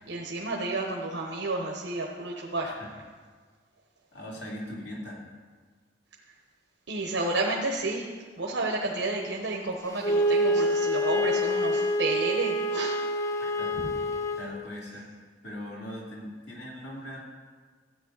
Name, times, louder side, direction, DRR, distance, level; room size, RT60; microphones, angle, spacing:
voice 1, 0.0-2.7 6.9-8.1 8.4-13.0, right 2 dB, 85° right, -2 dB, 1.2 m, -31 dB
voice 2, 4.1-5.3 13.4-13.7 14.4-15.1 15.4-17.2, left 1 dB, 65° left, -3 dB, 2.5 m, -40 dB
Wind instrument woodwind instrument, 10.0-14.5, equal, 15° left, 0.6 m, -26 dB
13.5 x 9.0 x 4.1 m, 1.5 s
head